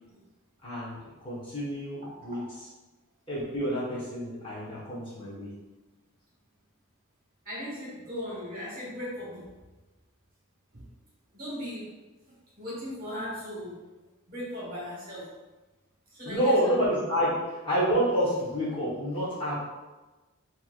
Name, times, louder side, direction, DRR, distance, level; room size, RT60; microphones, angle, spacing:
voice 1, 0.6-1.0 1.2-2.4 3.3-5.5 16.2-19.6, equal, 25° left, -9 dB, 1.0 m, -28 dB
voice 2, 2.0-2.4 7.4-9.5 10.7-10.9 11.3-11.9 12.6-13.8 14.3-15.3 16.1-16.6, equal, 40° right, -6 dB, 1.3 m, -38 dB
4.4 x 2.9 x 2.4 m, 1.2 s
head